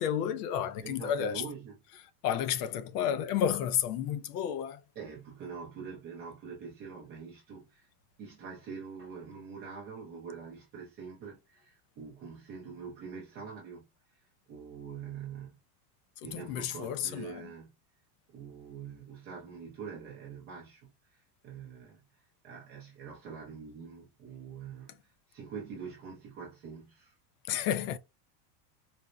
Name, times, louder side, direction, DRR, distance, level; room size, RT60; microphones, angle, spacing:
voice 1, 0.0-1.4 2.2-4.8 16.3-17.4 27.5-28.0, left 9 dB, 70° left, 0.6 m, -31 dB
voice 2, 0.8-1.8 5.0-7.9 8.2-13.8 14.1-15.6 16.2-17.7 18.3-27.1 27.5-27.6, right 6 dB, 20° right, 0.5 m, -45 dB
4.2 x 2.1 x 2.3 m
supercardioid pair, 170°, 50 cm